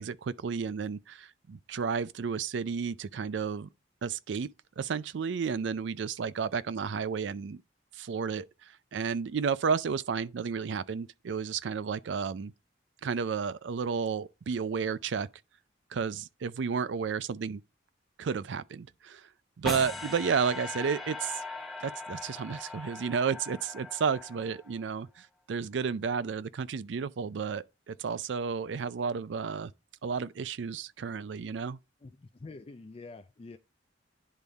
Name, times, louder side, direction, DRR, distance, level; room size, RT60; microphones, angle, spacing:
voice 1, 0.0-3.7 4.0-4.5 4.8-7.6 7.9-12.5 13.0-15.3 15.9-17.6 18.2-19.3 19.6-21.4 21.8-29.7 30.0-31.8, right 6 dB, 75° right, 0.4 m, -32 dB
sound 1, 19.6-24.9, left 2 dB, ahead, 0.7 m, -40 dB
voice 2, 32.0-33.6, left 3 dB, 30° left, 0.4 m, -46 dB
10.0 x 3.5 x 3.9 m
head